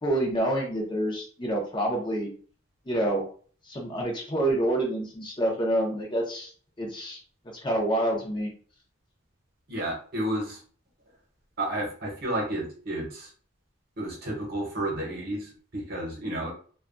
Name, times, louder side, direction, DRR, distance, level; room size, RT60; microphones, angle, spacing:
voice 1, 0.0-2.3 2.9-3.2 3.7-6.5 6.8-7.2 7.4-8.5, right 1 dB, 25° left, -1 dB, 0.6 m, -27 dB
voice 2, 9.7-10.6 11.6-13.3 14.0-16.5, right 1 dB, 50° right, -1 dB, 0.9 m, -31 dB
2.7 x 2.3 x 2.5 m, 0.44 s
head